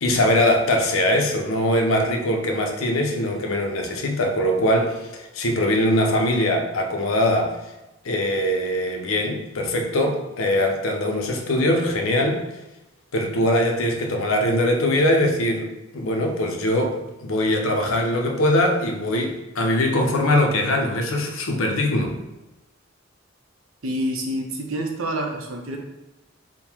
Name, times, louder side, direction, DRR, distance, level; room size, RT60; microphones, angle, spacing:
voice 1, 0.0-7.6 8.0-12.4 13.1-22.2, left 1 dB, 85° left, 3 dB, 0.6 m, -22 dB
voice 2, 23.8-25.8, right 1 dB, 85° right, 2 dB, 0.7 m, -27 dB
3.7 x 2.1 x 4.4 m, 1.0 s
head